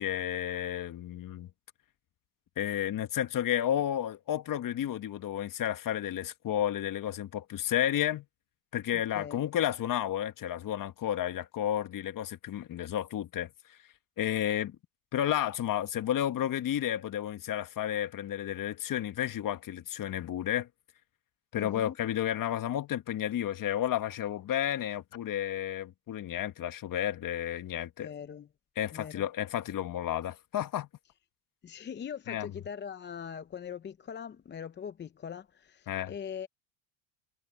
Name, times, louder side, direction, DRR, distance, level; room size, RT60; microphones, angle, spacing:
voice 1, 0.0-1.5 2.6-8.2 8.7-13.5 14.2-14.8 15.1-20.7 21.5-28.1 28.8-30.9 32.3-32.5 35.9-36.1, left 11 dB, 40° left, 1.8 m, -32 dB
voice 2, 8.9-9.4 21.5-21.9 28.0-28.5 28.9-29.3 31.6-36.5, left 7 dB, 20° left, 0.7 m, -41 dB
supercardioid pair, 105°, 49 cm